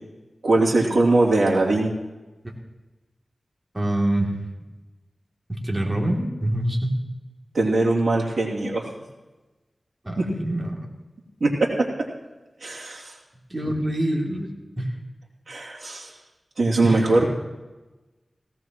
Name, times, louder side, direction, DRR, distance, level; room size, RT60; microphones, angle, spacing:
voice 1, 0.4-1.9 7.5-8.9 10.2-10.3 11.4-11.9 12.6-13.1 15.5-16.1 16.6-17.3, right 2 dB, 75° right, -3 dB, 2.8 m, -21 dB
voice 2, 3.7-4.3 5.5-7.0 10.0-10.7 13.5-14.5 14.8-14.9 16.8-17.1, right 1 dB, 30° right, -1 dB, 3.0 m, -25 dB
17.5 x 17.0 x 3.1 m, 1.2 s
cardioid pair, 45°, 0 cm